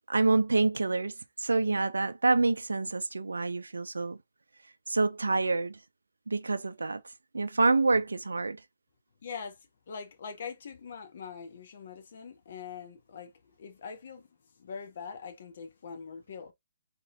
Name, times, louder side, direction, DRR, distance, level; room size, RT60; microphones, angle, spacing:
voice 1, 0.1-1.1 1.4-4.2 4.9-5.8 6.3-7.0 7.3-8.6, right 3 dB, 80° right, 0.3 m, -27 dB
voice 2, 9.2-9.6 9.9-14.3 14.5-16.5, left 6 dB, 55° left, 1.2 m, -43 dB
4.0 x 3.7 x 2.5 m
figure-of-eight pair, 135°, 0 cm